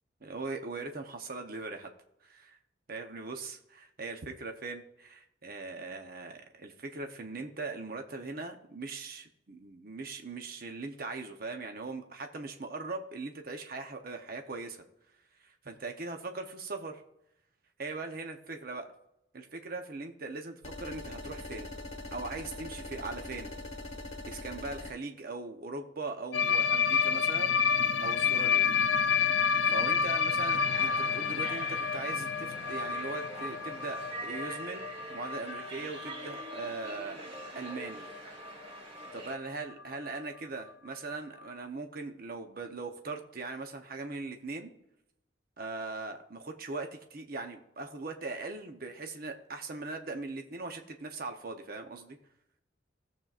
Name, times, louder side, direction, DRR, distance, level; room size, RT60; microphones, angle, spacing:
voice 1, 0.2-1.9 2.2-2.6 2.9-14.8 15.4-17.0 17.8-18.9 19.3-21.7 22.1-23.5 24.3-28.7 29.7-34.8 35.1-37.3 37.5-38.1 39.1-44.7 45.6-52.2, right 3 dB, 55° right, 5 dB, 0.8 m, -40 dB
sound 1, 20.6-24.9, left 2 dB, 35° left, 1.4 m, -42 dB
sound 2, 26.3-38.2 38.5-38.7 39.0-39.2 39.5-39.6 39.9-40.0 41.1-41.2, left 6 dB, 70° left, 0.4 m, -30 dB
sound 3, 30.4-39.4, right 2 dB, 35° right, 1.5 m, -45 dB
17.0 x 7.4 x 2.5 m, 0.81 s
head